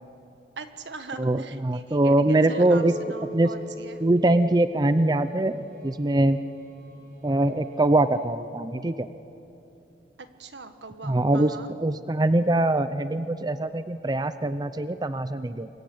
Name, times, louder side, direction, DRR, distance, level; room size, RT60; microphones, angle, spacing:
voice 1, 0.6-4.0 10.4-11.7, right 3 dB, 80° right, 8 dB, 1.7 m, -41 dB
voice 2, 1.2-3.0 3.3-3.5 4.0-5.6 5.8-6.4 7.2-9.1 11.0-15.7, right 2 dB, 25° right, 12 dB, 0.6 m, -23 dB
Chink clink, 2.5-6.8, equal, 60° left, 3.5 m, -41 dB
sound 1, 3.1-8.3, left 1 dB, 55° right, 6.2 m, -52 dB
27.5 x 22.5 x 8.6 m, 2.8 s
head